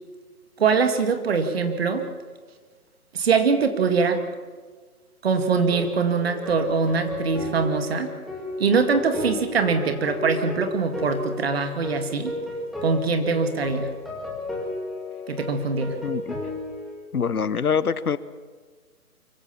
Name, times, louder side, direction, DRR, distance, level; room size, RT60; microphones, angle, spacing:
voice 1, 0.6-2.0 3.1-4.2 5.2-8.1 8.6-12.3 12.8-13.9 15.3-16.0, right 5 dB, 40° right, 8 dB, 2.2 m, -23 dB
sound 1, 5.7-16.9, left 2 dB, ahead, 2.3 m, -33 dB
voice 2, 16.0-16.4 17.1-18.2, left 6 dB, 70° left, 16 dB, 1.1 m, -24 dB
24.5 x 15.5 x 7.3 m, 1.4 s
figure-of-eight pair, 150°, 45 cm